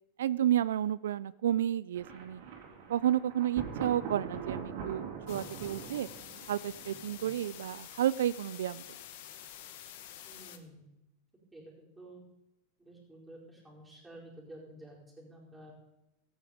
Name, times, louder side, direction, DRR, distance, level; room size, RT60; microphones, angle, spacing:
voice 1, 0.2-2.4 2.9-6.1 6.5-8.8, right 11 dB, 90° right, 18 dB, 0.3 m, -31 dB
Thunder, 1.9-7.8, right 6 dB, 65° right, 2.7 m, -42 dB
sound 1, 5.3-10.6, left 11 dB, 65° left, 1.2 m, -48 dB
voice 2, 10.2-10.9 11.5-11.6 12.0-12.2 12.8-15.7, right 1 dB, 5° right, -4 dB, 4.6 m, -51 dB
14.0 x 8.9 x 5.0 m, 0.94 s
supercardioid pair, 135°, 0 cm